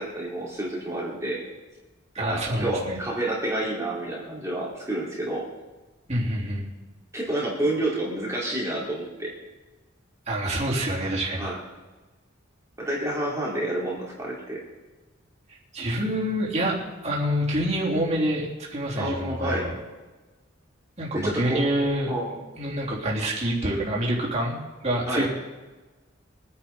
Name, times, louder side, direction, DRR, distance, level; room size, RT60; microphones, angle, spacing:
voice 1, 0.0-1.4 2.2-5.4 7.1-9.3 11.4-11.6 12.8-14.6 18.9-19.7 21.1-21.7 22.1-22.4 25.0-25.3, right 1 dB, 15° right, -6 dB, 2.9 m, -29 dB
voice 2, 2.1-3.0 6.1-6.7 10.3-11.5 15.7-19.7 21.0-22.1 22.6-25.3, right 1 dB, 35° right, -4 dB, 3.3 m, -27 dB
23.5 x 10.0 x 4.0 m, 1.2 s
head